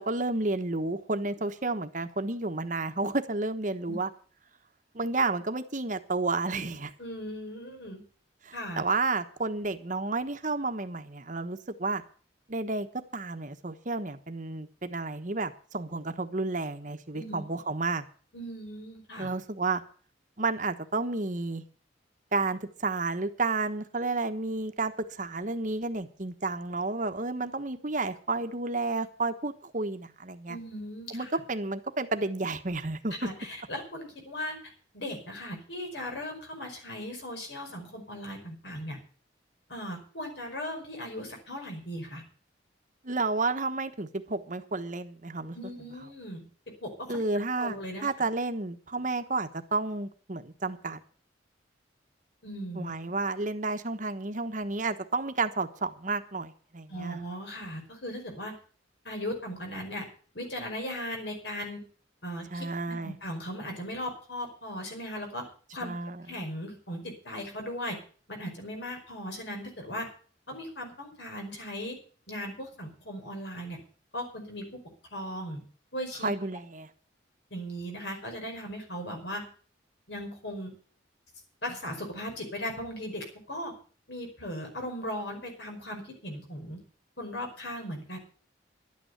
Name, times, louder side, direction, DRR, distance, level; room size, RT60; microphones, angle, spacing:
voice 1, 0.0-4.1 4.9-6.9 8.4-12.0 12.5-12.9 13.1-18.0 19.2-19.8 20.4-21.6 22.3-30.6 31.1-33.2 43.0-45.6 47.1-51.0 52.7-57.2 62.5-63.1 65.8-66.4 76.2-76.9, right 3 dB, 40° right, 8 dB, 1.2 m, -31 dB
voice 2, 7.0-8.0 8.5-8.8 17.1-17.4 18.3-19.3 30.5-31.3 33.2-39.0 39.7-42.2 45.5-47.2 47.6-48.1 52.4-52.9 56.9-58.5 59.0-60.1 60.3-61.8 62.2-65.9 66.3-68.0 68.3-70.1 70.5-72.0 72.3-73.8 74.1-74.8 75.1-75.6 75.9-76.3 77.5-79.5 80.1-80.7 81.6-83.7 84.1-86.8 87.2-88.2, equal, 65° left, 3 dB, 5.2 m, -38 dB
12.0 x 9.2 x 8.1 m, 0.42 s
head